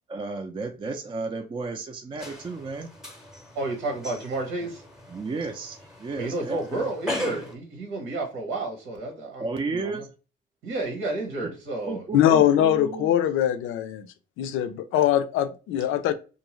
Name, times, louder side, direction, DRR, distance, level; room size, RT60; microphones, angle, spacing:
voice 1, 0.1-2.9 5.1-6.9 9.4-10.1 11.9-13.1, right 3 dB, 25° right, 0.4 m, -33 dB
sound 1, 2.2-7.6, left 1 dB, 5° right, 0.8 m, -38 dB
voice 2, 3.5-4.8 6.2-10.0 10.6-12.5, right 2 dB, 85° right, 1.1 m, -31 dB
voice 3, 12.1-14.1 14.4-16.1, left 11 dB, 80° left, 0.5 m, -22 dB
2.7 x 2.5 x 3.0 m
cardioid pair, 95°, 20 cm